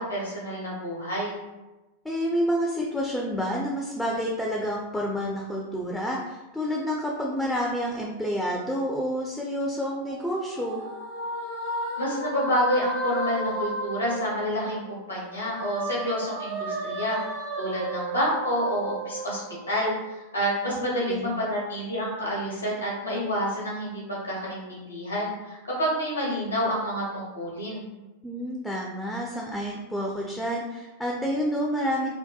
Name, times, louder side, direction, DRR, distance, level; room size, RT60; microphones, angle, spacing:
voice 1, 0.0-1.4 12.0-17.2 17.6-19.4 19.7-19.9 20.3-27.8, equal, 80° left, -5 dB, 0.9 m, -28 dB
voice 2, 2.0-10.8 20.7-21.4 28.2-32.1, equal, 5° left, -2 dB, 0.3 m, -29 dB
sound 1, 9.9-14.9 15.2-20.0, right 2 dB, 60° right, 0.7 m, -34 dB
2.6 x 2.1 x 2.3 m, 1.1 s
figure-of-eight pair, 90°, 0 cm